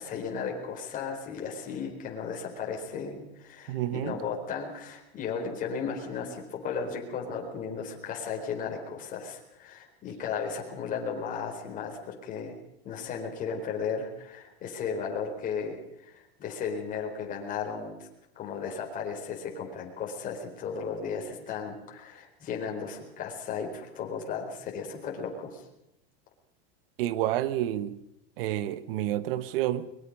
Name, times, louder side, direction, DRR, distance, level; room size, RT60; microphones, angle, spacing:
voice 1, 0.0-12.5 12.8-18.1 18.4-25.6, left 6 dB, 25° left, 4.3 m, -35 dB
voice 2, 3.7-4.2 27.0-28.0 28.4-29.9, right 13 dB, 60° right, 1.3 m, -29 dB
23.5 x 21.5 x 5.3 m
supercardioid pair, 160°, 31 cm